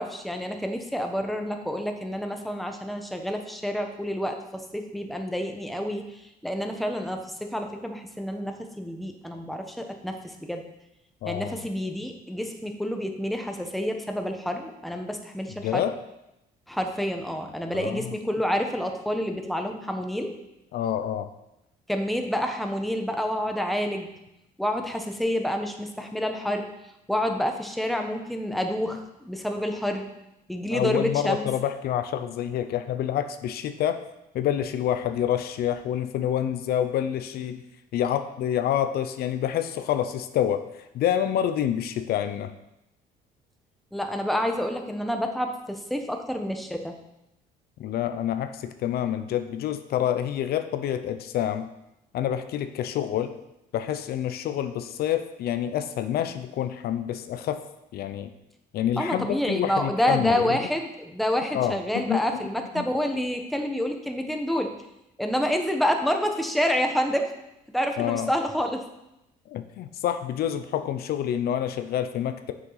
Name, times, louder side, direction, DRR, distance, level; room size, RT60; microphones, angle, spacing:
voice 1, 0.0-10.6 11.2-15.8 16.7-20.3 21.9-24.1 24.6-26.7 27.1-30.1 30.5-31.5 43.9-47.0 59.0-64.7 65.2-67.3 67.7-68.9, equal, ahead, 4 dB, 1.1 m, -28 dB
voice 2, 11.2-11.6 15.6-16.0 17.7-18.2 20.7-21.3 30.7-34.0 34.3-37.6 37.9-42.5 47.8-51.7 52.1-53.4 53.7-57.6 57.9-58.3 58.7-60.7 61.5-62.4 62.8-62.9 68.0-68.3 69.5-72.5, left 10 dB, 65° left, 9 dB, 0.6 m, -27 dB
7.4 x 6.4 x 5.7 m, 0.88 s
cardioid pair, 110°, 17 cm